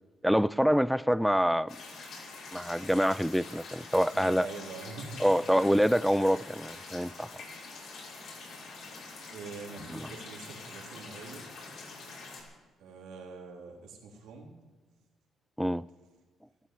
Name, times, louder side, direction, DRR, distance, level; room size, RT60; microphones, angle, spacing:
voice 1, 0.2-1.8 2.5-4.5 5.2-7.3 9.9-10.1 15.6-15.8, equal, ahead, 0.4 m, -26 dB
sound 1, 1.7-12.4, left 3 dB, 65° left, 5.7 m, -45 dB
voice 2, 4.1-5.2 5.5-5.7 9.3-11.5 12.8-14.5, right 4 dB, 85° right, 3.3 m, -44 dB
13.5 x 13.5 x 7.7 m
cardioid pair, 90°, 0 cm